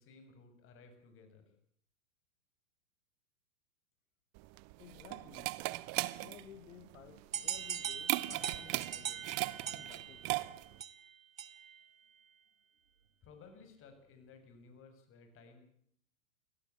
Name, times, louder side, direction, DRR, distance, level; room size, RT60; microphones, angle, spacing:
voice 1, 0.0-1.4 13.2-15.6, left 4 dB, 30° left, 7.0 m, -57 dB
sound 1, 4.4-10.8, right 22 dB, 35° right, 1.0 m, -38 dB
voice 2, 4.8-5.6 6.1-9.3 9.6-10.5, left 10 dB, 75° left, 1.8 m, -56 dB
sound 2, 7.3-11.8, right 8 dB, 80° right, 1.6 m, -41 dB
24.5 x 17.0 x 8.4 m
hypercardioid pair, 115°, 40 cm